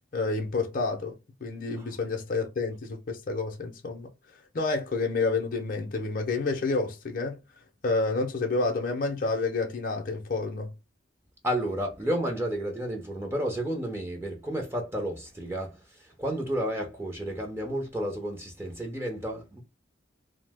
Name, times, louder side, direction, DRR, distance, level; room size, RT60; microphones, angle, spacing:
voice 1, 0.1-1.1 1.4-4.1 4.5-7.4 7.8-10.7, left 3 dB, 45° left, 0.5 m, -29 dB
voice 2, 11.4-19.6, equal, 10° right, 0.5 m, -31 dB
2.7 x 2.0 x 3.3 m
head